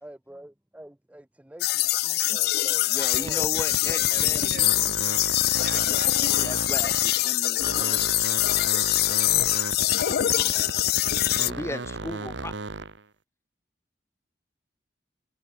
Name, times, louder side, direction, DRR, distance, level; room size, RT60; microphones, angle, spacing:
voice 1, 0.0-2.9 3.2-3.5, right 1 dB, 10° right, 0.6 m, -46 dB
sound 1, 1.6-11.5, left 16 dB, 60° left, 0.4 m, -24 dB
voice 2, 2.9-4.7 6.4-8.1 11.2-12.5, left 1 dB, 15° left, 1.2 m, -36 dB
sound 2, 3.1-7.3 7.6-13.0, right 3 dB, 90° right, 1.3 m, -35 dB
voice 3, 3.8-6.1, right 5 dB, 55° right, 1.0 m, -42 dB
head